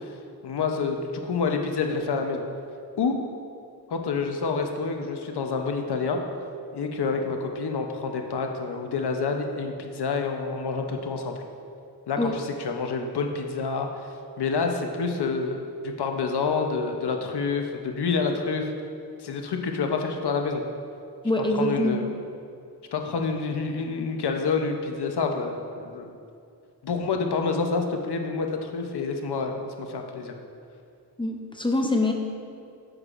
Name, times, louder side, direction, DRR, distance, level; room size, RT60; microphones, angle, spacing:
voice 1, 0.4-2.4 3.0-3.1 3.9-6.2 6.7-11.3 12.1-13.9 14.4-18.7 19.2-20.6 21.6-22.0 22.9-26.1 26.8-30.4, left 4 dB, 75° left, 4 dB, 0.7 m, -28 dB
voice 2, 21.2-22.0 31.2-32.1, left 1 dB, 10° left, 2 dB, 0.5 m, -24 dB
9.7 x 6.3 x 2.5 m, 2.4 s
wide cardioid pair, 130°, 40 cm